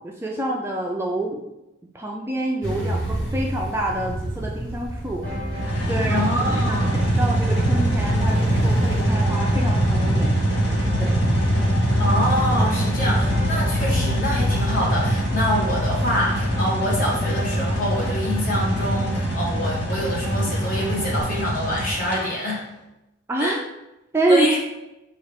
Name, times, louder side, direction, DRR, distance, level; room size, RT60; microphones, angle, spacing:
voice 1, 0.0-1.4 1.9-5.2 5.5-10.4 11.0-11.2 23.3-23.6 24.1-24.5, right 1 dB, 15° right, 0 dB, 0.3 m, -27 dB
sound 1, 2.6-9.0, right 1 dB, 90° left, 1.5 m, -30 dB
sound 2, 5.2-21.2, equal, 10° left, 1.5 m, -33 dB
sound 3, 5.6-22.2, equal, 65° left, 1.4 m, -23 dB
voice 2, 6.1-6.9 12.0-22.6 23.4-23.6 24.3-24.6, equal, 45° left, -4 dB, 1.3 m, -26 dB
4.3 x 2.4 x 4.8 m, 0.95 s
head